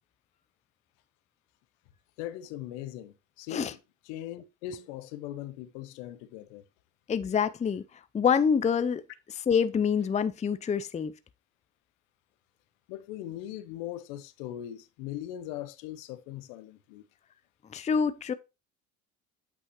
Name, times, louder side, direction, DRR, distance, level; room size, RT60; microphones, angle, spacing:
voice 1, 2.2-3.8 4.0-6.6 12.9-17.0, left 12 dB, 75° left, 0.8 m, -40 dB
voice 2, 7.1-7.8 8.1-9.0 9.5-11.1 17.7-18.3, left 7 dB, 20° left, 0.5 m, -26 dB
8.6 x 5.4 x 3.0 m
hypercardioid pair, 65°, 39 cm